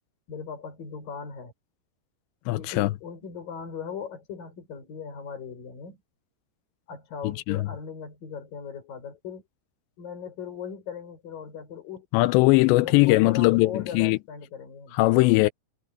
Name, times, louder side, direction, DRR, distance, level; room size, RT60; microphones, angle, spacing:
voice 1, 0.3-1.5 2.6-6.0 6.9-9.4 10.0-12.1 12.6-15.0, left 6 dB, 50° left, 8.0 m, -39 dB
voice 2, 2.5-2.9 7.2-7.7 12.1-14.2 14.9-15.5, left 20 dB, 85° left, 2.8 m, -20 dB
omnidirectional pair, 5.1 m